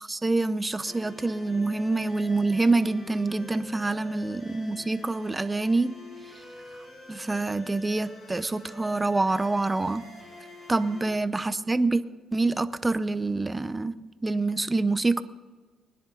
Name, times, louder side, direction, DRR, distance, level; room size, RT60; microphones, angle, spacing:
voice 1, 0.1-5.9 6.3-6.4 7.1-10.0 10.7-12.0 12.3-14.0 14.2-15.2, right 3 dB, 20° right, 12 dB, 0.8 m, -26 dB
sound 1, 0.8-11.2, left 1 dB, 50° left, 5.6 m, -46 dB
23.0 x 10.0 x 4.0 m, 1.4 s
cardioid pair, 90°, 0 cm